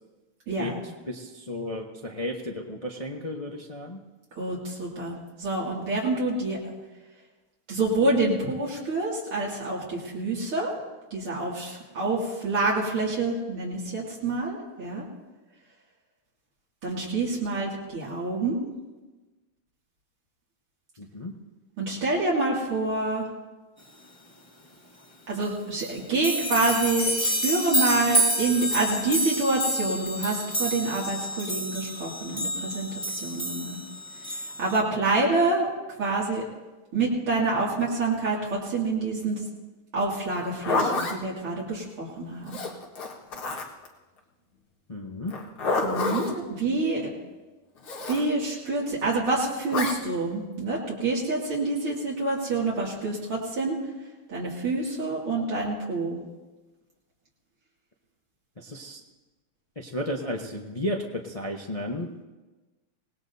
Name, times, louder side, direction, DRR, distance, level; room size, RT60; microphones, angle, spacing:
voice 1, 0.5-0.8 4.4-6.6 7.7-10.7 11.1-15.0 16.8-18.6 21.8-23.3 25.3-32.9 33.2-33.8 34.6-35.7 36.0-36.4 36.9-39.4 39.9-42.6 45.8-47.0 48.1-53.8 54.3-56.2, right 3 dB, 80° right, -6 dB, 3.4 m, -27 dB
voice 2, 1.1-4.0 21.0-21.3 44.9-45.3 58.6-59.0 59.8-62.1, left 1 dB, 35° left, 0 dB, 0.5 m, -33 dB
sound 1, 25.4-25.5 25.8-34.8, right 1 dB, 15° left, 1.5 m, -29 dB
Zipper (clothing), 40.3-41.2 42.5-43.9 45.3-46.4 47.8-48.2 49.7-50.0, left 3 dB, 75° left, 2.5 m, -28 dB
25.5 x 19.0 x 2.8 m, 1.2 s
omnidirectional pair, 2.4 m